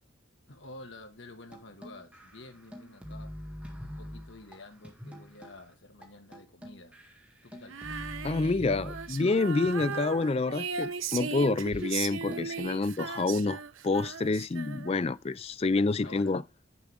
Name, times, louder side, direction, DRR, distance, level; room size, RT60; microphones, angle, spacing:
voice 1, 0.5-7.0 7.4-7.8 15.7-16.4, left 2 dB, 65° left, 1.7 m, -50 dB
sound 1, 1.5-5.6 6.0-6.1 6.3-9.4 9.6-10.4 10.8-10.9 11.1-12.6, equal, 5° right, 1.8 m, -45 dB
Female singing, 7.7-15.2, right 5 dB, 75° right, 0.8 m, -37 dB
voice 2, 8.2-16.4, left 3 dB, 30° left, 0.4 m, -28 dB
7.3 x 7.0 x 3.5 m
head